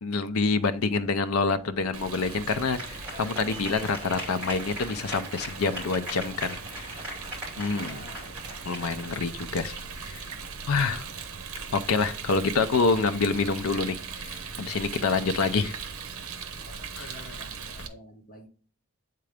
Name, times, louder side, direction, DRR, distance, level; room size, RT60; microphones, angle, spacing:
voice 1, 0.0-7.0 7.6-8.1 8.6-10.3 10.7-11.0 11.7-15.8 17.0-17.3, left 4 dB, 75° left, 10 dB, 0.5 m, -27 dB
sound 1, 0.6-10.7, equal, 5° right, 2.7 m, -41 dB
Rain, 1.9-17.9, right 5 dB, 80° right, 0.9 m, -39 dB
voice 2, 7.7-8.4 16.8-18.5, right 1 dB, 40° left, -1 dB, 1.8 m, -48 dB
8.0 x 3.8 x 3.4 m, 0.40 s
head